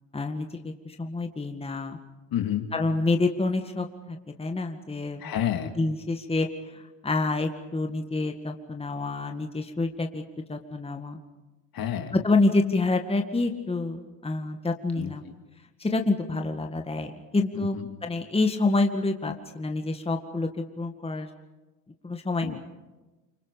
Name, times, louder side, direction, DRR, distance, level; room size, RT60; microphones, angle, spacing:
voice 1, 0.1-2.0 2.7-5.3 5.8-10.2 10.5-11.2 12.1-15.2 15.8-21.3 22.0-22.6, left 3 dB, 10° left, 4 dB, 1.9 m, -28 dB
voice 2, 2.3-2.7 5.2-5.7 11.7-12.1 15.0-15.1 17.5-17.9 22.4-22.6, left 10 dB, 45° left, 6 dB, 2.6 m, -29 dB
29.0 x 25.5 x 5.2 m, 1.1 s
hypercardioid pair, 70°, 48 cm